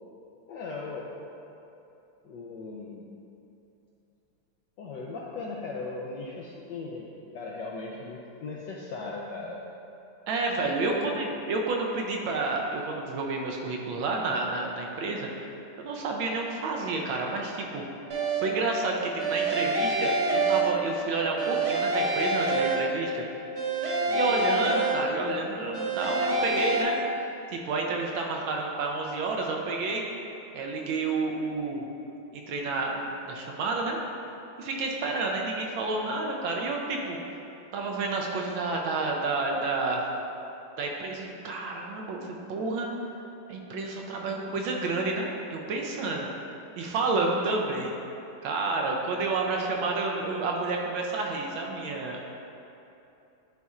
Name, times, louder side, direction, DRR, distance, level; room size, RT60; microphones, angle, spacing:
voice 1, 0.5-1.2 2.2-3.1 4.8-7.1 7.3-9.6 10.7-11.2 24.1-24.4, left 3 dB, 75° left, -3 dB, 1.0 m, -38 dB
voice 2, 10.3-15.5 15.8-17.8 18.4-23.2 23.8-27.0 27.5-30.1 30.5-31.9 32.3-34.0 34.6-37.2 37.7-40.1 40.8-42.9 43.5-46.3 46.8-47.9 48.4-52.2, right 3 dB, 75° right, 0 dB, 1.3 m, -30 dB
sound 1, 18.1-18.7 19.2-21.1 21.4-23.2 23.6-25.4 25.7-26.8, right 2 dB, 60° right, 1.4 m, -27 dB
10.5 x 4.1 x 2.4 m, 2.8 s
omnidirectional pair, 2.4 m